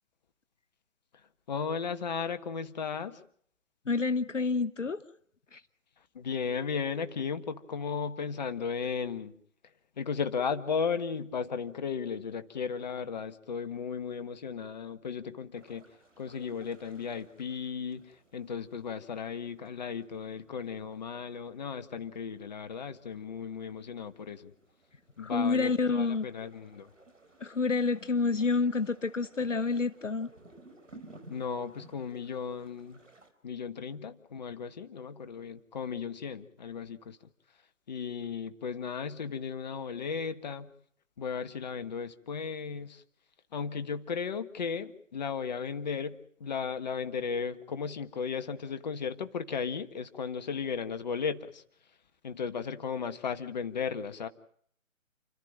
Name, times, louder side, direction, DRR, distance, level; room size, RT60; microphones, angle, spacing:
voice 1, 1.5-3.2 6.1-9.4 10.0-15.9 16.2-24.5 25.2-26.9 31.3-33.0 33.4-37.2 37.9-40.7 41.2-43.0 43.5-51.6 52.2-54.3, left 6 dB, 35° left, 10 dB, 1.6 m, -35 dB
voice 2, 3.9-5.0 5.5-5.6 25.2-26.3 27.4-30.3, left 4 dB, 65° left, 12 dB, 1.1 m, -28 dB
sound 1, 15.5-33.3, right 2 dB, 65° right, 4.5 m, -58 dB
30.0 x 14.0 x 9.1 m, 0.63 s
figure-of-eight pair, 145°, 39 cm